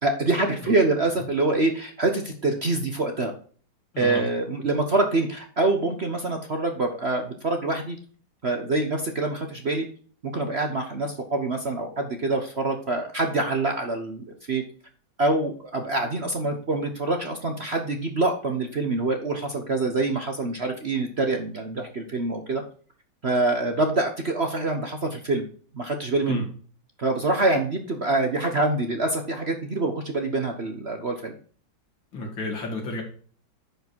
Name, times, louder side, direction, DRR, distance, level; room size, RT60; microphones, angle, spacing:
voice 1, 0.0-3.3 4.0-8.0 8.4-9.9 10.2-14.6 15.2-22.6 23.2-25.4 25.7-26.4 27.0-31.3, right 2 dB, 40° right, 4 dB, 1.1 m, -25 dB
voice 2, 3.9-4.2 26.3-26.5 32.1-33.0, left 1 dB, 70° left, 2 dB, 3.2 m, -31 dB
10.5 x 5.1 x 4.6 m, 0.43 s
omnidirectional pair, 2.2 m